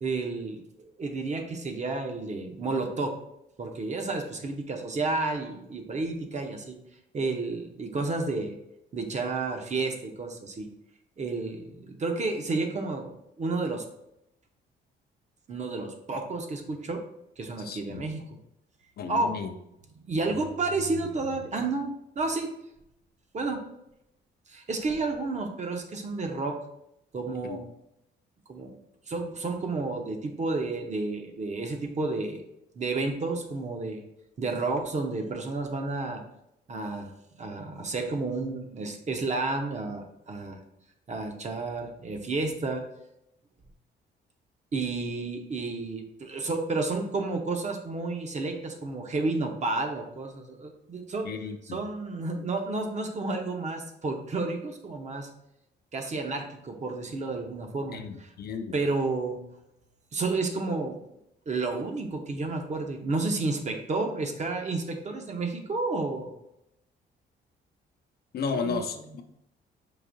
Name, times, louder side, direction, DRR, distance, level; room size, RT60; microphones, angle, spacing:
voice 1, 0.0-3.1 3.6-6.8 7.1-8.6 8.9-10.7 11.2-13.1 13.4-13.8 15.5-17.0 17.4-18.2 19.1-19.3 20.0-22.5 23.3-23.6 24.5-26.6 27.1-27.7 28.5-28.8 29.1-32.4 32.8-34.0 34.4-36.2 36.7-37.1 37.4-40.6 41.1-42.8 44.7-51.3 51.7-55.3 55.9-58.3 58.7-59.4 60.1-61.0 61.5-66.3 68.5-68.8, right 3 dB, 35° right, 4 dB, 0.7 m, -31 dB
voice 2, 17.6-18.0 19.0-19.5 27.4-27.6 51.2-51.8 57.9-58.7 68.3-69.2, left 5 dB, 50° left, 7 dB, 0.4 m, -34 dB
4.8 x 2.6 x 2.6 m, 0.80 s
cardioid pair, 90°, 20 cm